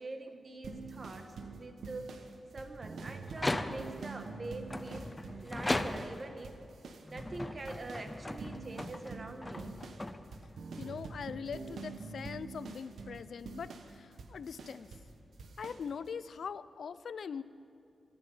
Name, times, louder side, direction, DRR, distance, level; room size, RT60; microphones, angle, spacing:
voice 1, 0.0-2.1 2.5-5.1 5.4-6.6 7.1-9.8, right 2 dB, 35° right, 6 dB, 1.4 m, -44 dB
sound 1, 0.6-6.2 6.4-7.4 7.6-15.1 15.4-15.8, right 4 dB, 85° right, 1.2 m, -46 dB
sound 2, 3.3-4.1 4.7-6.4 7.0-10.6, left 1 dB, 15° left, 0.6 m, -38 dB
voice 2, 10.8-14.9 15.6-17.4, left 6 dB, 70° left, 16 dB, 0.4 m, -42 dB
23.5 x 11.0 x 5.5 m, 2.6 s
wide cardioid pair, 115°, 0 cm